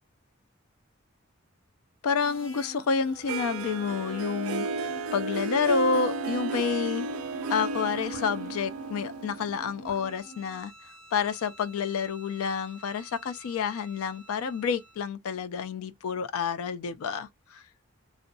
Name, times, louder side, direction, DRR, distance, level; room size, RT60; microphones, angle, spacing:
voice 1, 2.0-7.1 7.5-10.7 11.1-17.6, left 6 dB, 85° left, 0.3 m, -29 dB
sound 1, 2.2-10.6, equal, 70° left, 1.5 m, -46 dB
Harp, 3.3-10.2, right 3 dB, 80° right, 0.3 m, -33 dB
Bowed string instrument, 9.8-15.1, right 1 dB, 50° left, 1.0 m, -52 dB
2.6 x 2.1 x 2.6 m
head